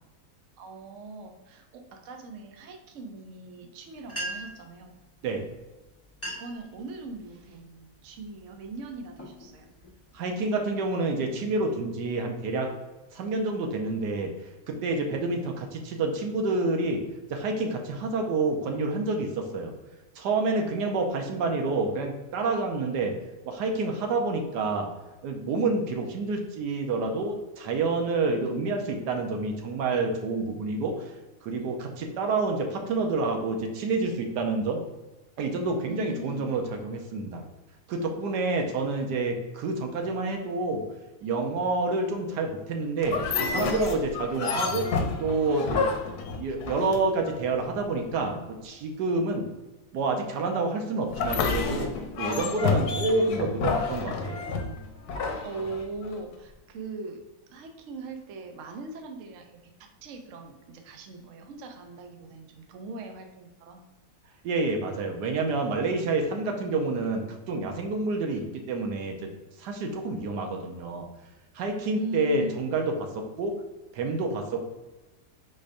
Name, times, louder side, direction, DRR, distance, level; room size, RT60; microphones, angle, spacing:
voice 1, 0.6-5.0 6.2-9.7 35.8-36.5 55.4-57.2 57.5-63.8 72.0-72.5, right 2 dB, 60° right, 4 dB, 0.9 m, -40 dB
sound 1, 4.1-4.7 5.6-5.7 6.1-6.6 7.1-7.5 8.1-8.4 8.9-10.1, right 1 dB, 15° left, 0.5 m, -38 dB
voice 2, 10.1-12.7 13.1-14.3 14.7-17.0 17.3-19.7 20.2-23.2 23.4-24.9 25.2-31.1 31.4-34.8 35.4-37.4 37.9-40.8 41.2-44.9 45.2-45.9 46.4-49.5 49.9-51.9 52.2-54.4 64.4-69.3 69.6-71.1 71.5-73.5 73.9-74.7, right 3 dB, 80° right, 3 dB, 1.3 m, -28 dB
sound 2, 43.0-47.3 51.1-56.2, left 4 dB, 70° left, 1.1 m, -29 dB
4.8 x 4.3 x 2.5 m, 1.1 s
omnidirectional pair, 1.8 m